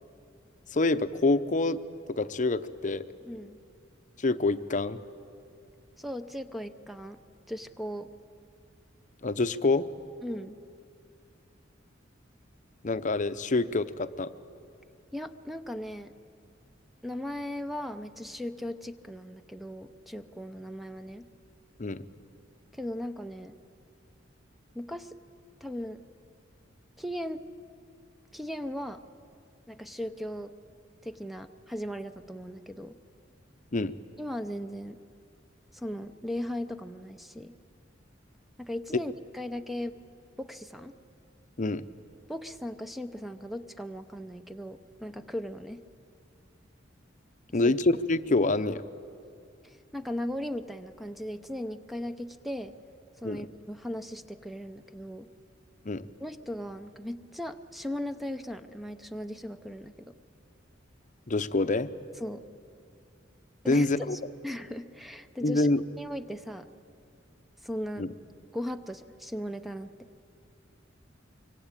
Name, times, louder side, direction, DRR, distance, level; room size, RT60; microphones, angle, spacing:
voice 1, 0.7-1.8 2.1-3.1 4.2-5.0 9.2-9.9 12.8-14.3 21.8-22.0 33.7-33.9 41.6-41.8 47.5-48.8 53.2-53.5 55.8-56.1 61.3-61.9 63.7-64.2 65.4-65.8 68.0-68.1, left 2 dB, 40° left, 12 dB, 0.8 m, -26 dB
voice 2, 3.2-3.6 6.0-7.2 7.5-8.1 10.2-10.6 15.1-16.1 17.0-21.3 22.7-23.6 24.7-25.2 25.6-26.0 27.0-27.4 28.3-29.0 29.7-30.5 31.0-33.0 34.2-35.0 35.7-37.5 38.6-39.9 40.4-40.9 42.3-45.8 47.6-47.7 49.6-52.7 53.2-55.3 56.2-60.1 62.2-62.4 63.6-65.7 66.0-66.7 67.6-68.1 68.5-69.9, left 1 dB, ahead, 9 dB, 0.7 m, -37 dB
25.0 x 24.0 x 9.0 m, 2.4 s
head